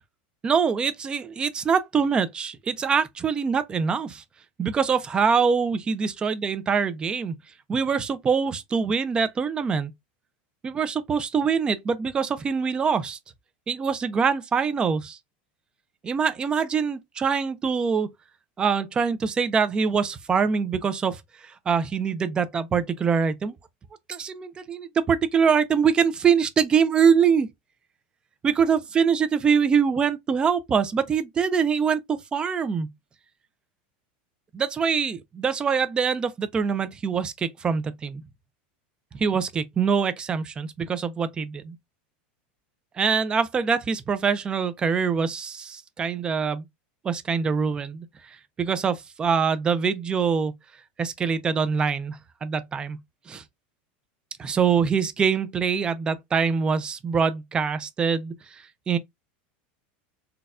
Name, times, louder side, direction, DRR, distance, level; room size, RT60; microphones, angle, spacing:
voice 1, 0.4-4.2 4.6-7.4 7.7-9.9 10.6-13.2 13.7-15.2 16.0-18.1 18.6-23.5 24.1-27.5 28.4-32.9 34.5-38.2 39.1-41.8 43.0-46.6 47.0-50.5 51.0-53.0 53.3-53.4 54.4-59.0, right 6 dB, 15° right, 0.4 m, -24 dB
4.1 x 2.2 x 2.4 m
supercardioid pair, 155°, 5 cm